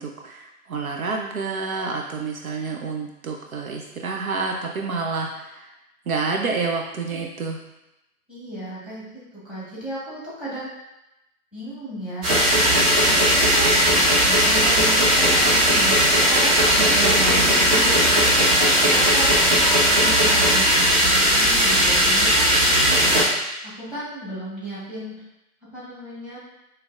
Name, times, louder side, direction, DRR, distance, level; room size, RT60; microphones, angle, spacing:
voice 1, 0.0-5.7 6.1-7.6 16.8-17.5, right 4 dB, 65° right, 1 dB, 0.6 m, -28 dB
voice 2, 8.3-9.0 9.3-10.7 11.5-12.3 13.0-13.7 14.2-19.3 19.8-23.0 23.6-25.2 25.7-26.4, right 1 dB, ahead, -9 dB, 1.2 m, -34 dB
sound 1, 12.2-23.2, equal, 35° right, 1.2 m, -17 dB
4.5 x 3.2 x 2.4 m, 0.92 s
figure-of-eight pair, 120°, 46 cm